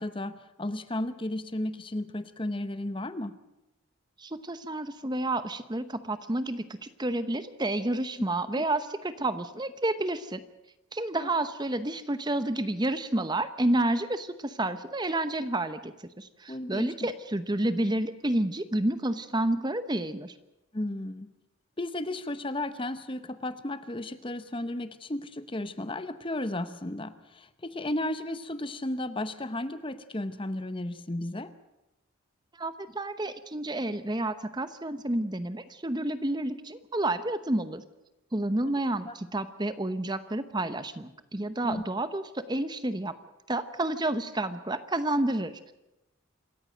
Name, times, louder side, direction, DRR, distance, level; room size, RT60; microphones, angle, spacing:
voice 1, 0.0-3.4 8.5-8.6 11.1-11.3 16.5-17.1 20.7-21.3 21.8-31.5 39.1-39.2 41.6-41.8, left 1 dB, 25° left, 12 dB, 0.9 m, -34 dB
voice 2, 4.2-10.4 10.9-20.3 32.6-37.8 38.3-43.1 43.5-45.6, right 1 dB, 20° right, 12 dB, 0.9 m, -30 dB
27.0 x 14.5 x 7.7 m, 0.96 s
head